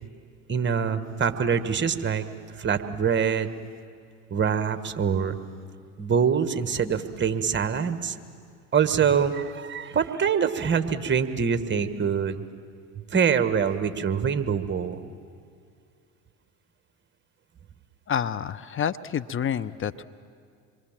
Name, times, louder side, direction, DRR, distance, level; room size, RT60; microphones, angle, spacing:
voice 1, 0.5-2.2 2.6-3.5 4.3-5.4 6.0-8.1 8.7-12.4 13.1-15.0, right 7 dB, 25° right, 9 dB, 1.6 m, -24 dB
voice 2, 18.1-20.0, left 8 dB, 30° left, 14 dB, 0.7 m, -28 dB
27.0 x 23.0 x 7.5 m, 2.3 s
hypercardioid pair, 80°, 42 cm